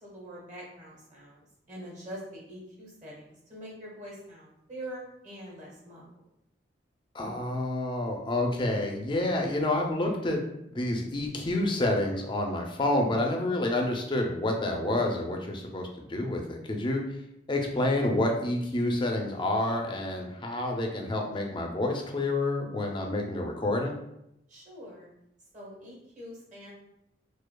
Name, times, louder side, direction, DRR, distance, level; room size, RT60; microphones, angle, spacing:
voice 1, 0.0-6.0 24.5-25.1 25.5-26.7, equal, 40° right, -4 dB, 1.2 m, -44 dB
voice 2, 7.1-17.0 17.5-24.0, left 1 dB, 25° left, 2 dB, 0.4 m, -28 dB
4.6 x 2.3 x 2.2 m, 0.81 s
head